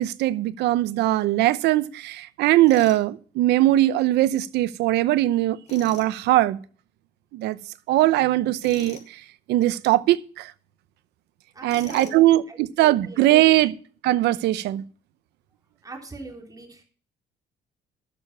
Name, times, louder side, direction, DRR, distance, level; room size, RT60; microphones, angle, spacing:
voice 1, 0.0-6.6 7.3-7.6 7.9-9.2 9.5-10.5 11.6-13.7 14.0-14.8, right 15 dB, 80° right, 0.8 m, -20 dB
Tools, 2.7-3.0 5.7-6.1 8.6-9.1 11.7-12.3, left 4 dB, 40° left, 2.7 m, -42 dB
voice 2, 11.5-13.6 15.8-16.8, right 3 dB, 20° right, 3.8 m, -43 dB
12.5 x 6.8 x 5.8 m
cardioid pair, 110°, 17 cm